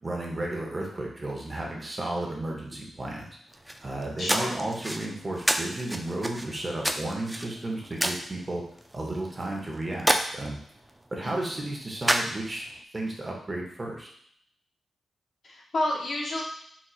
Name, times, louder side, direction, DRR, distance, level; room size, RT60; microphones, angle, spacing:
voice 1, 0.0-3.2 3.8-8.6 8.9-10.6 11.1-12.7 12.9-14.1, right 1 dB, 35° right, -1 dB, 1.0 m, -33 dB
sound 1, 3.5-12.8, right 1 dB, 10° right, 0.4 m, -31 dB
voice 2, 4.2-4.6 11.2-11.5 15.4-16.4, left 1 dB, 65° left, -2 dB, 0.9 m, -30 dB
4.0 x 2.8 x 2.4 m, 0.66 s
cardioid pair, 55°, 0 cm